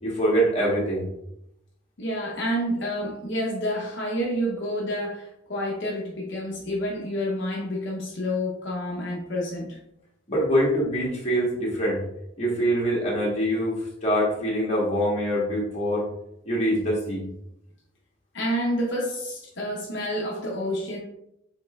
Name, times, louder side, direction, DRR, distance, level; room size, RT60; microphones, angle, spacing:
voice 1, 0.0-1.1 10.3-12.0 12.4-16.1 16.5-17.3, equal, 35° left, -5 dB, 1.2 m, -24 dB
voice 2, 2.0-9.8 18.3-21.0, equal, 65° left, -3 dB, 0.8 m, -29 dB
5.2 x 3.6 x 2.3 m, 0.81 s
head